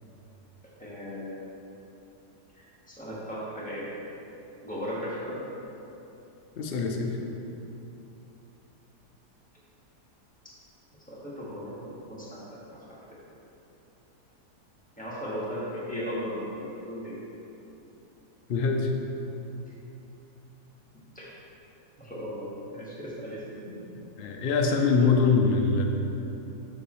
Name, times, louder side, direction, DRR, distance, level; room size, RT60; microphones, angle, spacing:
voice 1, 0.8-1.4 2.6-3.9 4.6-5.4 11.1-12.4 12.7-12.8 15.0-17.2 21.1-21.3 22.0-23.6, equal, 5° left, -9 dB, 1.4 m, -36 dB
voice 2, 6.6-7.2 18.5-18.9 23.6-25.9, left 4 dB, 75° left, 2 dB, 0.5 m, -24 dB
7.0 x 6.7 x 3.1 m, 2.9 s
omnidirectional pair, 1.7 m